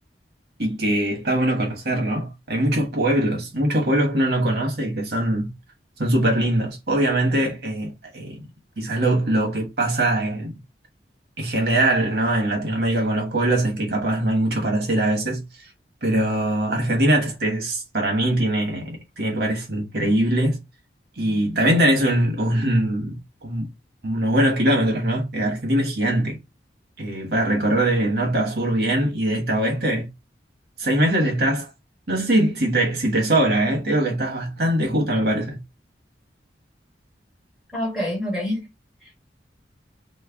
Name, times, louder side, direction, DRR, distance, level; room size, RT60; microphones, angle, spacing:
voice 1, 0.6-5.5 6.0-8.4 8.8-10.6 11.4-15.7 16.0-20.6 21.2-23.7 24.0-26.4 27.0-30.1 30.8-31.7 32.1-35.6, right 1 dB, 60° right, 1.1 m, -22 dB
voice 2, 37.7-38.6 39.0-39.1, left 1 dB, ahead, 1.5 m, -26 dB
3.1 x 2.1 x 3.5 m
head